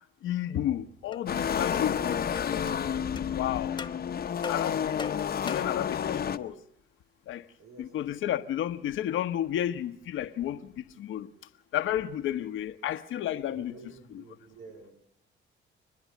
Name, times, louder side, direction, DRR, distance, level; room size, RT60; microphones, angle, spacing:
voice 1, 0.2-2.2 3.3-3.8 4.5-5.1 5.4-6.6 7.3-7.5 7.8-11.3 11.7-13.7 14.1-14.2, left 11 dB, 80° left, 1.0 m, -32 dB
sound 1, 1.1-1.2 1.7-1.9 2.4-2.5 3.2-3.3 3.8-4.0 4.4-5.8, left 4 dB, 25° left, 0.8 m, -40 dB
sound 2, 1.3-6.4, left 8 dB, 50° left, 0.9 m, -30 dB
voice 2, 7.6-8.2 13.5-14.9, right 4 dB, 90° right, 4.3 m, -50 dB
29.5 x 10.5 x 9.4 m
cardioid pair, 90°, 20 cm